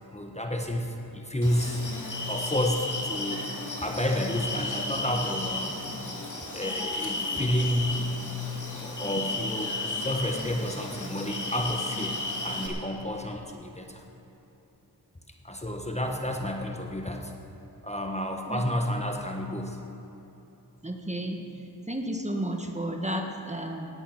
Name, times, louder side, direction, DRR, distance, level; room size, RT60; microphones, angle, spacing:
voice 1, 0.1-1.8 2.2-3.4 3.8-5.8 6.5-8.1 8.7-14.0 15.4-17.3 17.8-19.8, left 1 dB, 15° left, 2 dB, 1.2 m, -30 dB
sound 1, 1.4-12.7, left 2 dB, 50° left, 2.4 m, -34 dB
voice 2, 20.8-21.4 21.9-23.9, right 1 dB, 15° right, 3 dB, 1.4 m, -32 dB
18.5 x 8.5 x 6.0 m, 3.0 s
cardioid pair, 55°, 40 cm